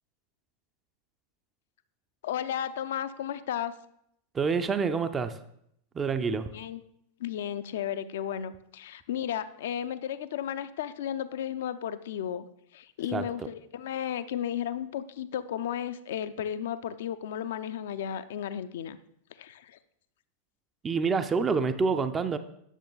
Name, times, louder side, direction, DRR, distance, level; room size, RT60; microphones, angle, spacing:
voice 1, 2.2-3.7 6.3-6.8 7.2-12.4 12.7-19.0 19.3-19.8, left 10 dB, 55° left, 12 dB, 0.5 m, -34 dB
voice 2, 4.3-5.4 5.9-6.5 13.1-13.2 20.8-22.4, right 5 dB, 20° right, 10 dB, 0.5 m, -27 dB
10.0 x 6.6 x 3.9 m, 0.73 s
figure-of-eight pair, 90°, 0 cm